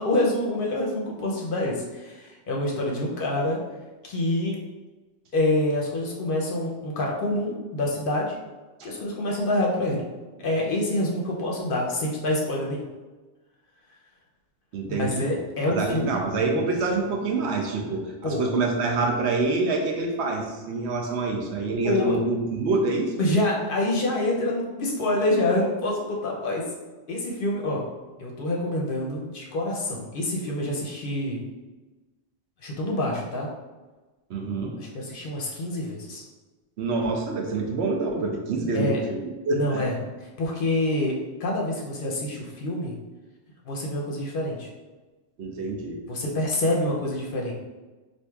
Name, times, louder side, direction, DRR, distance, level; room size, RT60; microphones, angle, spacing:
voice 1, 0.0-3.6 4.0-4.6 5.3-8.4 8.8-10.0 10.4-12.8 15.0-16.2 18.2-18.5 21.8-22.1 23.2-26.6 27.1-27.8 28.2-31.5 32.6-33.5 34.8-36.2 38.7-39.0 39.5-39.9 40.2-43.0 43.7-44.7 46.1-47.5, left 1 dB, 60° left, -2 dB, 0.7 m, -26 dB
voice 2, 14.7-15.2 15.7-23.1 34.3-34.7 36.8-39.8 45.4-46.0, right 3 dB, 75° right, 1 dB, 0.9 m, -26 dB
4.5 x 2.6 x 2.2 m, 1.2 s
omnidirectional pair, 1.2 m